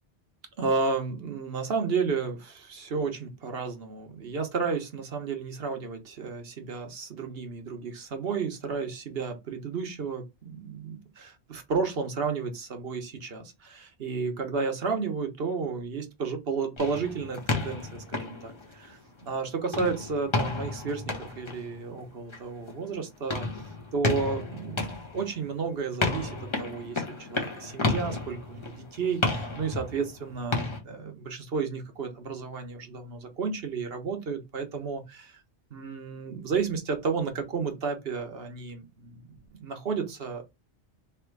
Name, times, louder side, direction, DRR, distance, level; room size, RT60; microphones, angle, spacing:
voice 1, 0.6-23.5 23.9-24.8 25.1-35.4 35.7-40.4, right 5 dB, 70° right, 1.3 m, -32 dB
sound 1, 16.8-19.3 19.7-30.8, left 2 dB, 30° left, 1.0 m, -32 dB
3.5 x 3.0 x 4.5 m
omnidirectional pair, 1.0 m